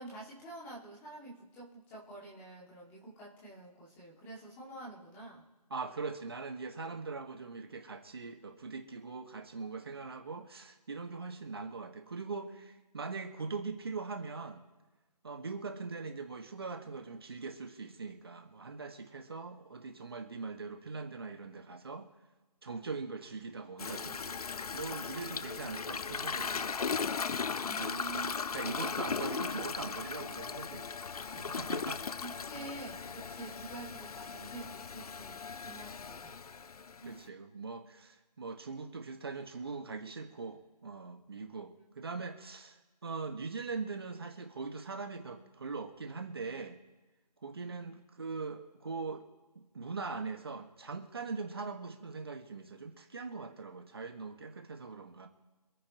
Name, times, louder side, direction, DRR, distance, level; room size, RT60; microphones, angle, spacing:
voice 1, 0.0-5.4 27.6-28.3 31.7-36.4 37.0-37.2 47.5-48.0, right 2 dB, 10° left, -6 dB, 2.1 m, -48 dB
voice 2, 5.7-14.6 15.2-22.1 22.6-24.4 24.7-26.8 27.7-28.0 28.5-30.9 31.3-32.0 32.5-32.6 37.0-46.8 47.4-49.3 49.5-55.3, right 4 dB, 35° right, 4 dB, 1.6 m, -41 dB
Toilet flush, 23.8-37.2, left 5 dB, 65° left, 0.4 m, -38 dB
27.0 x 9.5 x 3.0 m, 1.2 s
figure-of-eight pair, 165°, 21 cm